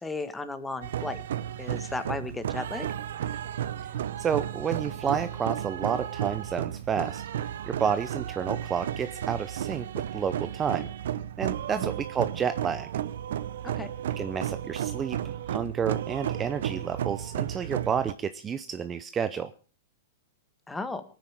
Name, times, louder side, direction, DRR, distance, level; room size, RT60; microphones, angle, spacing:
voice 1, 0.0-1.2 1.6-2.9 11.7-11.9 13.6-13.9 20.7-21.0, left 3 dB, 10° left, 10 dB, 1.5 m, -35 dB
sound 1, 0.8-18.1, right 10 dB, 75° right, 0.8 m, -33 dB
voice 2, 4.2-7.2 7.7-10.9 11.4-12.9 14.2-15.2 15.5-19.5, right 7 dB, 20° right, 11 dB, 0.7 m, -30 dB
18.0 x 9.4 x 6.4 m, 0.39 s
hypercardioid pair, 145°, 0 cm